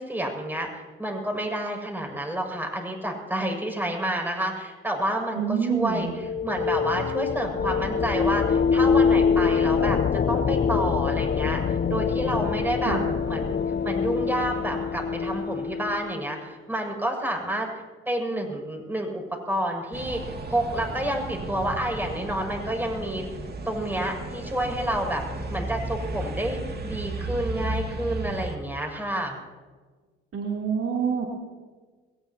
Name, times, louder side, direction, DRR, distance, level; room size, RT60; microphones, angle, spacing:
voice 1, 0.0-6.1 6.4-10.0 10.3-13.0 13.2-13.6 13.8-17.7 18.1-23.3 23.7-25.2 25.5-29.4, right 1 dB, 5° right, 1 dB, 6.7 m, -29 dB
voice 2, 5.3-6.1 12.8-13.1 30.3-31.3, right 6 dB, 55° right, -1 dB, 3.5 m, -26 dB
sound 1, 5.8-16.3, left 6 dB, 35° left, 0.7 m, -25 dB
sound 2, 19.9-28.6, right 2 dB, 35° right, 2.6 m, -34 dB
21.5 x 19.5 x 3.0 m, 1.4 s
hypercardioid pair, 50°, 30 cm